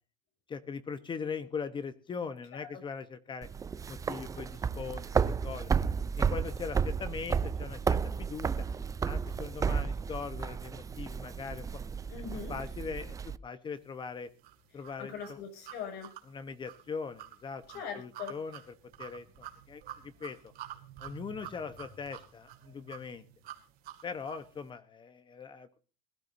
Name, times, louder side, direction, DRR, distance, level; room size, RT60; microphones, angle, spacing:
voice 1, 0.5-3.5 3.9-5.7 6.1-8.7 9.0-11.7 12.5-14.3 14.7-15.4 16.3-17.6 17.9-18.6 19.0-20.5 21.0-23.2 24.0-25.8, left 5 dB, 30° left, 11 dB, 1.1 m, -40 dB
sound 1, 3.4-13.4, right 6 dB, 20° right, 0.5 m, -32 dB
voice 2, 12.1-12.5 14.7-16.1 17.7-18.3, left 7 dB, 70° left, 5 dB, 6.8 m, -41 dB
sound 2, 14.4-24.5, right 11 dB, 60° right, 2.5 m, -48 dB
20.5 x 12.5 x 2.7 m, 0.36 s
cardioid pair, 130°, 17 cm